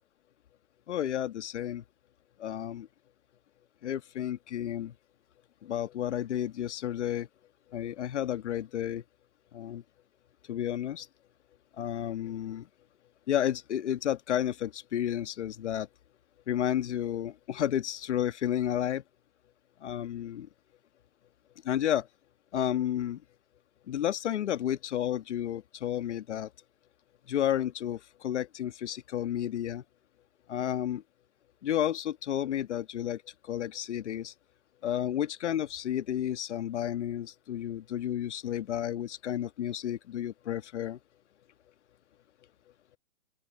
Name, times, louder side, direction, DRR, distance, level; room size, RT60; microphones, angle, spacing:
voice 1, 0.9-1.8 2.4-2.9 3.8-4.9 5.6-7.3 7.7-9.0 9.5-9.8 10.5-11.1 11.8-12.7 13.3-15.9 16.5-19.0 19.8-20.5 21.6-22.1 22.5-23.2 23.9-26.5 27.3-29.8 30.5-31.0 31.6-33.2 33.5-34.3 34.8-41.0, left 11 dB, 60° left, 1.8 m, -31 dB
open air
hypercardioid pair, 135°, 40 cm